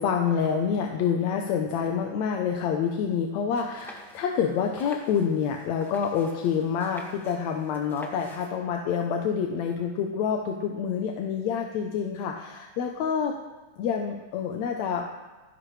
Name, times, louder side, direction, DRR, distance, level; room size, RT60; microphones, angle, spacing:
voice 1, 0.0-13.4 13.8-15.1, left 7 dB, 70° left, 2 dB, 2.1 m, -27 dB
sound 1, 3.5-8.5, equal, ahead, 0.7 m, -48 dB
27.5 x 11.5 x 3.3 m, 1.3 s
omnidirectional pair, 3.5 m